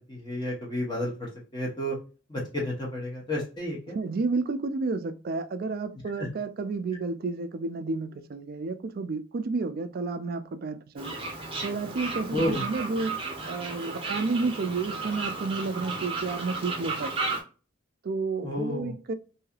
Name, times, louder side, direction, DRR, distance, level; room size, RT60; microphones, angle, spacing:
voice 1, 0.1-1.1 1.5-2.0 2.3-4.0 6.2-6.3 12.3-12.6 18.4-18.9, left 1 dB, 20° left, 0.9 m, -31 dB
voice 2, 3.9-11.2 11.6-13.2 13.5-17.1 18.0-19.1, right 3 dB, 45° right, 0.4 m, -31 dB
Fowl, 11.0-17.4, right 3 dB, 25° right, 0.7 m, -34 dB
3.1 x 2.7 x 2.3 m
head